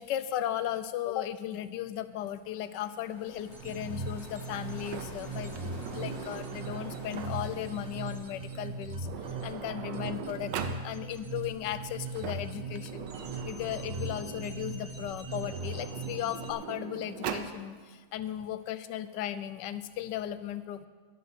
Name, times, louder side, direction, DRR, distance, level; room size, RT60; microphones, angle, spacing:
voice 1, 0.0-13.2 13.5-20.9, left 11 dB, 85° left, 13 dB, 1.3 m, -36 dB
sound 1, 1.9-10.0, left 1 dB, 40° left, 2.3 m, -50 dB
sound 2, 3.5-16.5, right 3 dB, 35° right, 0.8 m, -39 dB
Sliding door, 4.8-7.6 8.6-8.7 9.0-10.8 11.9-14.5 15.3-17.5, right 7 dB, 90° right, 1.5 m, -41 dB
11.5 x 7.4 x 7.7 m, 1.5 s
omnidirectional pair, 1.8 m